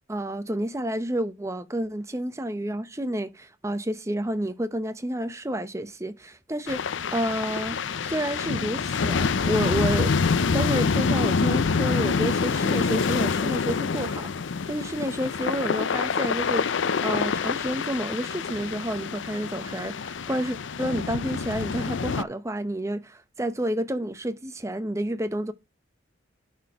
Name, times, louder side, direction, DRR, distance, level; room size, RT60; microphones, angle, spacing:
voice 1, 0.1-10.1 10.5-16.7 17.0-25.5, right 1 dB, 15° right, 0.7 m, -30 dB
sound 1, 6.7-22.2, left 5 dB, 70° left, 0.5 m, -26 dB
11.0 x 4.3 x 4.7 m
head